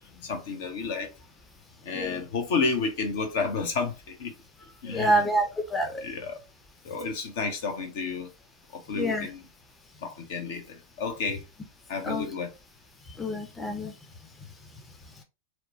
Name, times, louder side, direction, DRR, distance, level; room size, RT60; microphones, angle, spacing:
voice 1, 0.2-1.1 1.9-3.9 4.2-4.3 4.8-5.2 6.0-6.4 6.9-8.3 8.9-9.4 10.0-10.6 11.0-11.4 11.9-12.5, left 4 dB, 60° left, 0.7 m, -30 dB
voice 2, 4.9-6.0 8.9-9.3 12.0-12.3 13.2-13.9, right 1 dB, 15° left, 0.6 m, -27 dB
2.9 x 2.1 x 2.7 m
hypercardioid pair, 95°, 0 cm